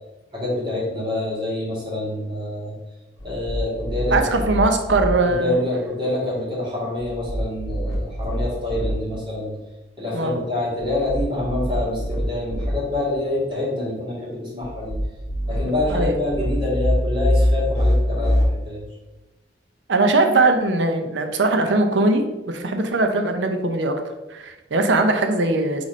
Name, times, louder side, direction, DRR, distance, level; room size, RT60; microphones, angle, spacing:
voice 1, 0.3-2.7 3.2-4.4 5.2-9.5 10.0-15.0 15.5-18.8, left 1 dB, 25° right, -7 dB, 2.1 m, -26 dB
sound 1, 3.2-5.1 7.0-8.9 10.8-12.7 14.6-18.4, equal, 20° left, 1.2 m, -24 dB
voice 2, 4.1-5.6 10.1-10.5 15.9-16.1 19.9-23.9 24.3-25.8, right 2 dB, 80° right, 6 dB, 0.7 m, -20 dB
4.7 x 4.1 x 5.0 m, 1.1 s
head